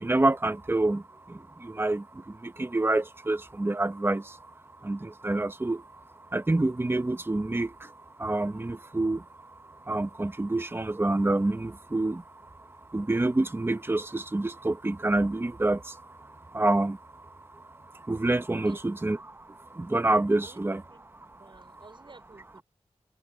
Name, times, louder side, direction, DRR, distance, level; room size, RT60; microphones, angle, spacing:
voice 1, 0.0-1.0 1.6-2.0 2.4-4.2 4.8-5.8 6.3-7.7 8.2-9.2 9.9-12.2 12.9-15.8 16.5-17.0 18.1-19.2 19.8-20.8, right 2 dB, 20° right, 1.0 m, -27 dB
voice 2, 20.4-21.1 21.3-22.6, right 3 dB, 45° right, 4.9 m, -53 dB
open air
wide cardioid pair, 100°, 11 cm